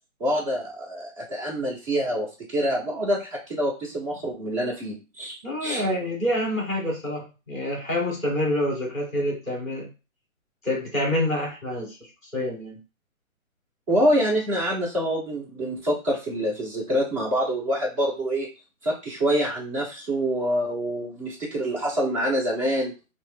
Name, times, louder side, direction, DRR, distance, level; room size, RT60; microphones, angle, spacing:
voice 1, 0.2-5.9 13.9-18.5 18.8-22.9, equal, 25° right, -4 dB, 1.1 m, -26 dB
voice 2, 5.4-9.9 10.6-12.0 12.3-12.8, left 1 dB, ahead, -2 dB, 0.7 m, -27 dB
2.9 x 2.0 x 3.6 m, 0.30 s
hypercardioid pair, 155°, 42 cm